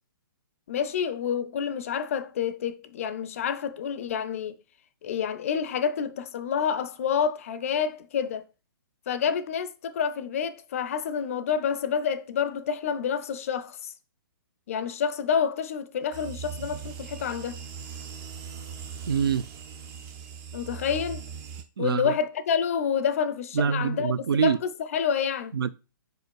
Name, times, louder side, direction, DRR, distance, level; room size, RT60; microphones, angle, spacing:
voice 1, 0.7-4.6 5.0-8.4 9.1-13.9 14.7-17.6 20.5-21.3 21.8-24.1 24.4-25.6, left 7 dB, 40° left, 0.5 m, -28 dB
sound 1, 16.1-21.6, right 7 dB, 15° right, 0.4 m, -40 dB
voice 2, 19.1-19.4 21.8-22.1 23.5-24.6 25.5-25.7, right 7 dB, 85° right, 0.6 m, -25 dB
5.1 x 4.7 x 4.6 m
hypercardioid pair, 165°, 12 cm